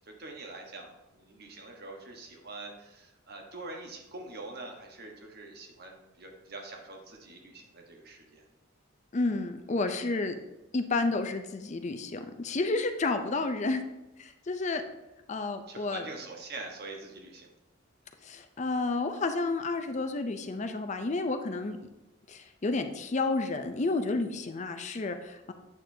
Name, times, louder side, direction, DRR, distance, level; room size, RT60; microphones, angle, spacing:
voice 1, 0.0-8.4 15.7-17.5, right 2 dB, 55° right, 2 dB, 1.2 m, -44 dB
voice 2, 9.1-10.4 10.7-13.8 14.2-14.8 15.3-16.0 18.2-21.9 22.3-25.5, left 3 dB, 35° left, 8 dB, 0.5 m, -31 dB
8.3 x 6.6 x 2.7 m, 1.0 s
head